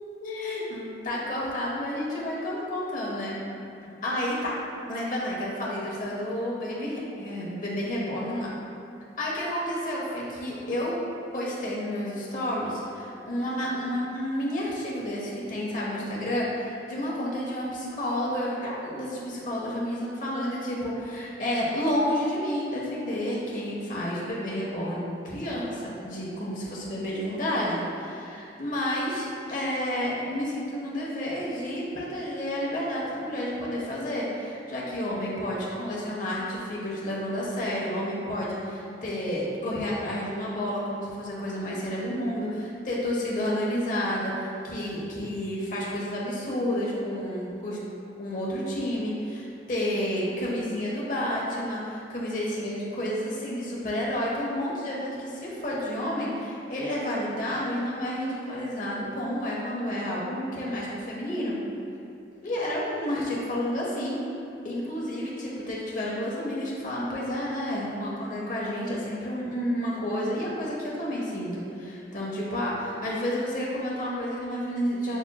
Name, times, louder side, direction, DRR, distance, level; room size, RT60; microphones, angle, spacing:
voice 1, 0.2-3.4 4.0-4.5 4.9-8.5 9.2-11.0 11.3-47.8 48.2-61.6 62.4-64.2 64.6-75.2, equal, 45° left, -5 dB, 0.8 m, -30 dB
7.1 x 2.5 x 2.2 m, 2.6 s
head